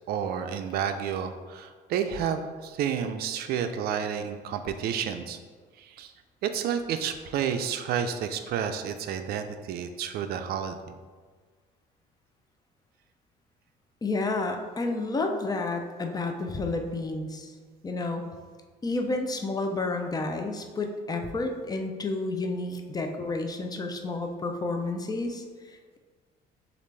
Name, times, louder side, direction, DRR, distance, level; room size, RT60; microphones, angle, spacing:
voice 1, 0.1-5.4 5.8-6.1 6.4-11.0, right 8 dB, 70° right, 8 dB, 0.4 m, -30 dB
voice 2, 14.0-17.5 17.8-18.2 18.8-26.0, left 2 dB, 20° left, 4 dB, 0.5 m, -30 dB
6.6 x 2.5 x 3.2 m, 1.5 s
cardioid pair, 110°, 17 cm